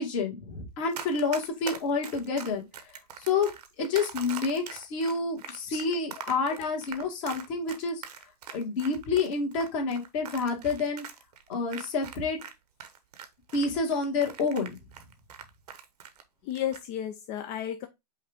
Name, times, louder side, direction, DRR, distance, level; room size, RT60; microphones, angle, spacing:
voice 1, 0.0-2.6 3.3-3.5 3.8-8.0 8.5-11.0 11.5-12.4 13.5-14.7, left 4 dB, 50° left, 1.7 m, -28 dB
Run, 0.9-12.5 12.8-16.2 16.5-16.8, right 8 dB, 70° right, 0.9 m, -42 dB
voice 2, 16.4-17.9, left 10 dB, 30° left, 0.4 m, -33 dB
5.4 x 2.5 x 3.4 m
hypercardioid pair, 125°, 21 cm